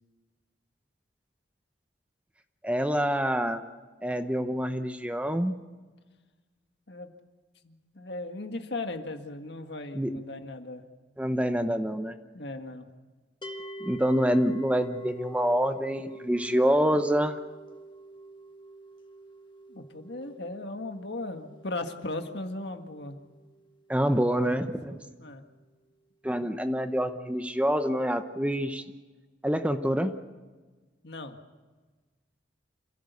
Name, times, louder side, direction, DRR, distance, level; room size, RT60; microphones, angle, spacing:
voice 1, 2.6-3.6 4.0-5.6 9.9-10.1 11.2-12.1 13.8-17.4 23.9-25.0 26.2-28.8 29.4-30.1, equal, 5° right, 8 dB, 0.8 m, -26 dB
voice 2, 7.6-10.9 12.3-12.9 19.7-23.2 24.4-25.4 31.0-31.4, left 2 dB, 65° left, 6 dB, 1.8 m, -37 dB
sound 1, 13.4-24.6, right 2 dB, 25° left, 1.5 m, -46 dB
27.0 x 16.0 x 8.3 m, 1.3 s
head